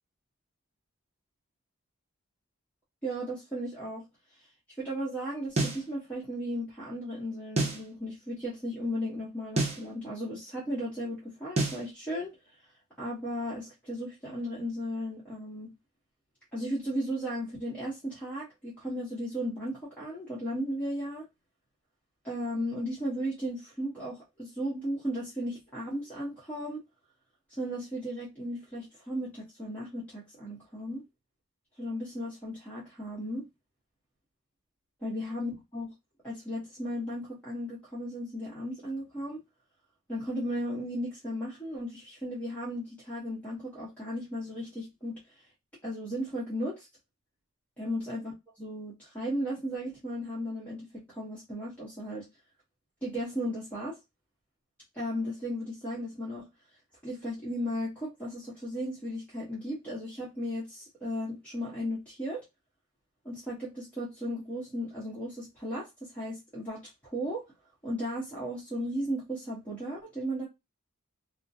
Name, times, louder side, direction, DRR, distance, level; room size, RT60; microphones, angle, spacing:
voice 1, 3.0-4.0 4.8-12.3 13.0-15.7 16.5-21.3 22.2-26.8 27.6-31.0 31.8-33.4 35.0-35.9 36.2-39.4 40.1-45.2 45.8-46.9 47.8-48.3 48.6-52.3 53.0-54.0 54.9-56.5 57.0-62.4 63.2-67.4 67.8-70.5, equal, 5° left, 0.9 m, -35 dB
sound 1, 5.6-5.9 7.6-7.9 9.6-9.9 11.6-11.9, right 2 dB, 30° right, 0.6 m, -28 dB
2.4 x 2.1 x 2.6 m
head